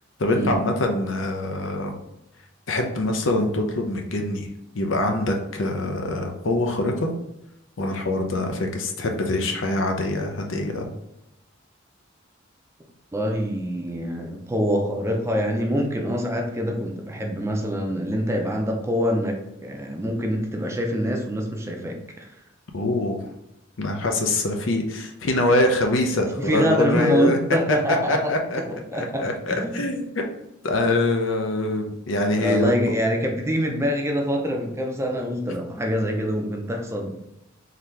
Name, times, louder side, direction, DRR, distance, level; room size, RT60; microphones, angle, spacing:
voice 1, 0.2-1.9 2.7-4.5 4.7-7.1 7.8-10.9 22.7-23.2 23.8-27.4 28.1-28.6 28.9-30.2 30.6-32.7, left 2 dB, 70° left, 3 dB, 0.7 m, -24 dB
voice 2, 13.1-22.3 26.4-28.4 28.7-29.8 32.4-37.2, equal, 15° right, 2 dB, 0.5 m, -25 dB
3.9 x 2.8 x 3.2 m, 0.86 s
head